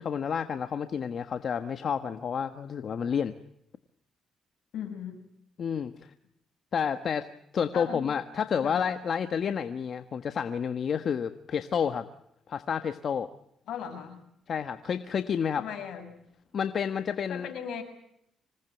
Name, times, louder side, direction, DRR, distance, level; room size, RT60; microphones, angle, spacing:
voice 1, 0.0-3.3 5.6-5.9 6.7-7.3 7.5-12.1 12.5-13.3 14.5-15.6 16.5-17.5, left 7 dB, 55° left, 9 dB, 1.4 m, -30 dB
voice 2, 4.7-5.2 7.7-8.1 8.6-8.9 13.7-14.2 15.6-16.2 17.3-17.8, left 8 dB, 75° left, 8 dB, 6.4 m, -37 dB
26.5 x 19.0 x 9.2 m, 0.75 s
cardioid pair, 90°, 0 cm